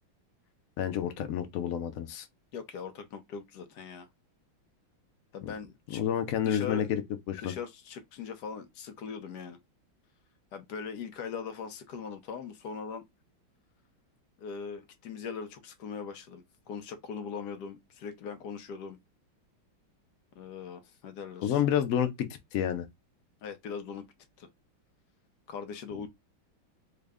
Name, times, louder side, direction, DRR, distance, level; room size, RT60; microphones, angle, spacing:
voice 1, 0.8-2.3 5.9-7.0 7.3-7.5 21.4-22.9, left 9 dB, 85° left, 0.7 m, -29 dB
voice 2, 2.5-4.1 5.3-6.0 6.4-6.9 7.4-9.6 10.5-13.0 14.4-19.0 20.3-21.6 23.4-24.1 24.4-24.5 25.5-26.1, left 6 dB, 65° left, 1.1 m, -40 dB
3.7 x 2.1 x 3.4 m
omnidirectional pair, 2.2 m